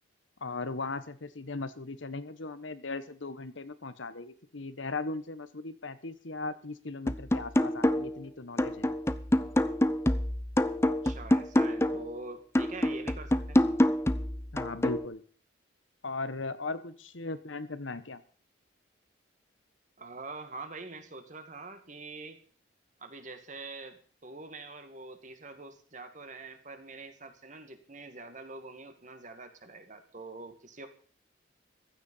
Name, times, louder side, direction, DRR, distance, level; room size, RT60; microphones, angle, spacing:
voice 1, 0.4-9.0 14.5-15.2 16.0-18.2, left 3 dB, 75° left, 12 dB, 1.3 m, -38 dB
sound 1, 7.1-8.2 8.6-12.1 12.6-15.1, left 1 dB, 15° left, 0.6 m, -27 dB
voice 2, 11.0-13.6 20.0-22.4 23.0-30.9, right 3 dB, 40° right, 7 dB, 2.1 m, -45 dB
15.5 x 13.0 x 5.6 m, 0.43 s
head